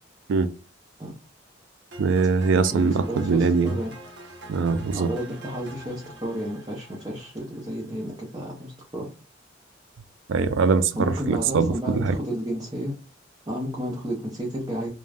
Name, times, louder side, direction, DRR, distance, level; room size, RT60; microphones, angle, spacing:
sound 1, 1.9-8.0, right 1 dB, 60° right, 0.8 m, -45 dB
voice 1, 2.0-3.7 4.5-5.1 10.3-12.2, right 4 dB, 75° right, 0.3 m, -22 dB
voice 2, 2.7-3.9 4.9-9.1 10.9-12.9 13.5-14.9, equal, 20° right, 0.6 m, -32 dB
2.4 x 2.2 x 3.3 m
head